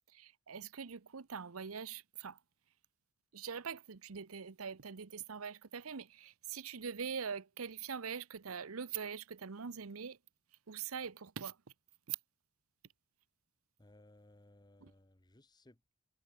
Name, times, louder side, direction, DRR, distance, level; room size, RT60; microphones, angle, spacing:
voice 1, 0.1-2.4 3.3-10.2 10.7-11.6 12.1-12.2 14.8-14.9, right 6 dB, 85° right, 0.8 m, -43 dB
voice 2, 13.8-15.9, left 1 dB, 20° left, 1.1 m, -62 dB
head